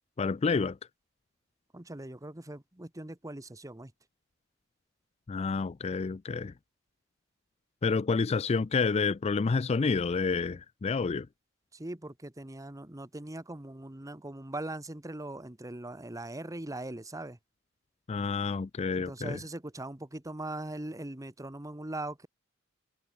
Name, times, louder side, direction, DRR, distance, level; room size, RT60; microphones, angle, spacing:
voice 1, 0.2-0.8 5.3-6.5 7.8-11.3 18.1-19.4, left 4 dB, 30° left, 0.4 m, -29 dB
voice 2, 1.7-3.9 11.7-17.4 18.9-22.3, right 1 dB, 15° right, 1.2 m, -40 dB
head